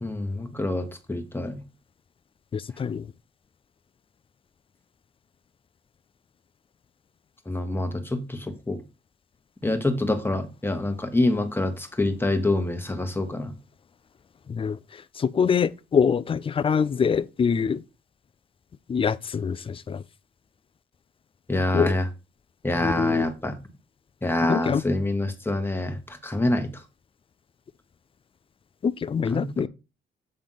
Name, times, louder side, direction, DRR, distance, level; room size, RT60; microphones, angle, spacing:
voice 1, 0.0-1.6 7.5-8.8 9.6-13.5 21.5-22.1 22.6-23.6 24.2-26.7 29.3-29.7, left 1 dB, 10° left, 1.3 m, -26 dB
voice 2, 2.5-3.0 14.5-14.8 15.2-17.8 18.9-20.0 21.7-21.9 22.8-23.2 24.5-24.8 28.8-29.7, left 6 dB, 25° left, 0.4 m, -24 dB
7.7 x 3.4 x 5.6 m
cardioid pair, 90°, 20 cm